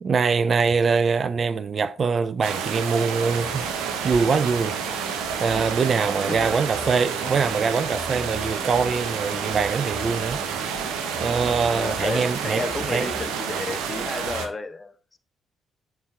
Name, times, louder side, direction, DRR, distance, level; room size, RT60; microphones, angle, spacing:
voice 1, 0.0-3.7 4.0-5.1 5.4-10.4 11.2-13.1, right 5 dB, 50° right, 0.4 m, -23 dB
sound 1, 2.4-14.5, right 7 dB, 75° right, 0.8 m, -29 dB
Fixed-wing aircraft airplane, 3.3-13.3, left 6 dB, 55° left, 0.7 m, -43 dB
sound 2, 6.1-14.5, equal, 20° right, 0.9 m, -42 dB
voice 2, 6.3-6.8 11.7-15.2, left 3 dB, 30° left, 1.0 m, -32 dB
7.4 x 4.3 x 3.6 m
hypercardioid pair, 50°, 0 cm